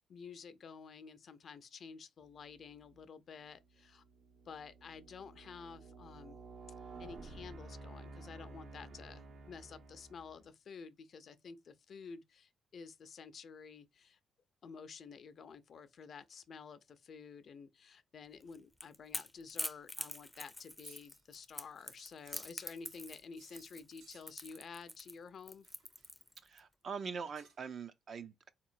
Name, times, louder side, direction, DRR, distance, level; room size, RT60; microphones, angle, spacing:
voice 1, 0.1-4.0 4.5-6.4 7.0-14.2 14.6-25.7, left 5 dB, 55° left, 0.5 m, -51 dB
sound 1, 2.7-3.0 3.6-10.5, right 3 dB, 70° right, 0.9 m, -52 dB
Crackle / Crack, 18.4-26.6, left 1 dB, 5° left, 0.5 m, -45 dB
sound 2, 20.5-21.2 21.8-22.9 23.4-23.7 24.0-24.5 25.6-26.3 27.0-27.8, right 5 dB, 85° right, 1.2 m, -64 dB
voice 2, 26.4-28.5, right 6 dB, 50° right, 0.5 m, -43 dB
3.7 x 2.9 x 2.5 m
cardioid pair, 90°, 0 cm